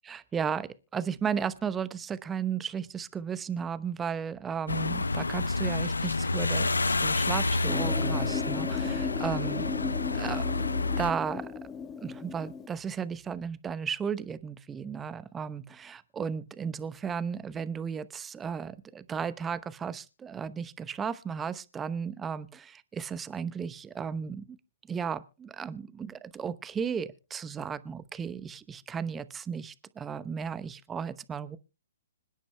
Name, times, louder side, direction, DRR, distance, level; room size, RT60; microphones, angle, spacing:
voice 1, 0.0-9.8 10.1-10.5 11.0-11.5 12.0-24.6 24.9-31.6, right 7 dB, 15° right, 16 dB, 0.8 m, -35 dB
sound 1, 4.7-11.1, left 3 dB, 85° left, 0.7 m, -29 dB
sound 2, 7.6-12.7, left 6 dB, 20° left, 1.1 m, -35 dB
26.0 x 10.5 x 2.2 m, 0.30 s
figure-of-eight pair, 130°, 0 cm